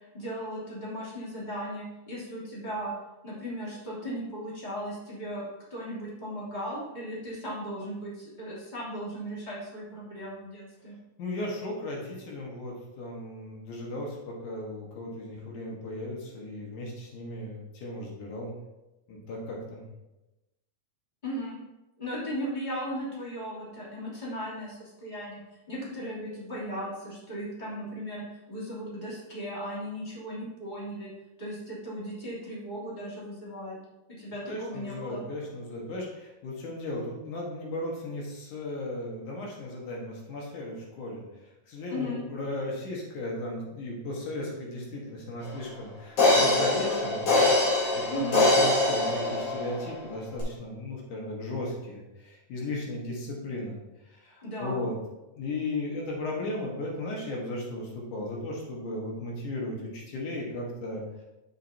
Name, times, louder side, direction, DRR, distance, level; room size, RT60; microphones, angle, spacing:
voice 1, 0.0-2.9 3.2-11.0 21.2-21.6 22.0-25.4 25.7-31.1 31.4-33.8 34.2-35.2 41.9-42.2 46.7-47.0 48.1-48.4 54.4-54.8, equal, 15° left, -8 dB, 3.0 m, -37 dB
voice 2, 11.2-18.5 19.1-19.8 34.5-41.2 41.7-53.8 54.1-55.0 55.3-61.0, left 1 dB, 80° left, -2 dB, 3.0 m, -36 dB
Crash Overhead Drum Percussion, 45.5-45.6 46.2-49.9 50.4-50.5, left 2 dB, 65° left, 4.5 m, -23 dB
10.0 x 7.5 x 2.8 m, 1.0 s
omnidirectional pair, 3.5 m